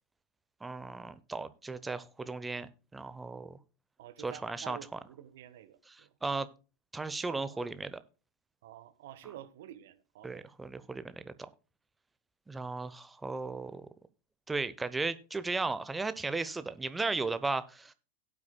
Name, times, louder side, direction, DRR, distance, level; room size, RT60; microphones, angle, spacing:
voice 1, 0.6-3.6 4.2-4.8 6.2-6.5 6.9-8.0 10.2-11.3 12.5-13.9 14.5-17.9, right 3 dB, 10° right, 0.8 m, -35 dB
voice 2, 4.0-6.1 7.2-7.9 8.6-10.5, right 11 dB, 55° right, 1.2 m, -50 dB
17.5 x 8.5 x 2.2 m
figure-of-eight pair, 90°, 0 cm